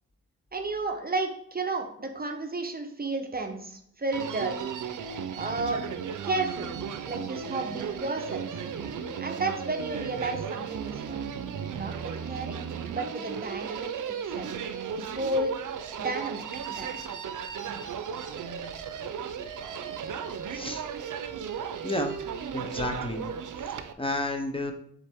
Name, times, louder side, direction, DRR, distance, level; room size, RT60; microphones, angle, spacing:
voice 1, 0.5-4.6 5.3-5.8 6.2-6.7 7.0-8.6 9.2-11.3 11.8-12.6 12.9-14.5 15.0-15.5 16.0-17.0, right 2 dB, 30° right, 5 dB, 0.7 m, -32 dB
Human voice, 4.1-23.9, right 7 dB, 80° right, 0.5 m, -35 dB
voice 2, 20.5-20.8 21.8-22.2 22.5-23.2 24.0-24.7, left 2 dB, 20° left, 4 dB, 0.6 m, -31 dB
7.3 x 3.8 x 3.4 m, 0.67 s
wide cardioid pair, 95°, 31 cm